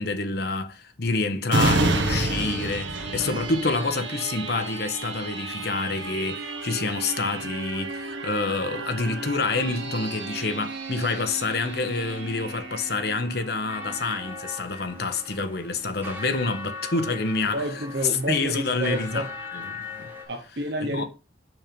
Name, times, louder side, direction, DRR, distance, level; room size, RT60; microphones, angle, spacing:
voice 1, 0.0-17.6 18.3-19.3 19.5-20.1 20.8-21.1, left 3 dB, 55° left, 1.0 m, -28 dB
sound 1, 1.5-14.8 15.3-15.4, right 2 dB, 80° right, 1.3 m, -31 dB
sound 2, 13.7-20.2, left 3 dB, 10° right, 1.7 m, -39 dB
voice 2, 17.5-19.3 20.3-21.1, right 1 dB, 60° right, 1.0 m, -30 dB
6.2 x 5.3 x 5.2 m
head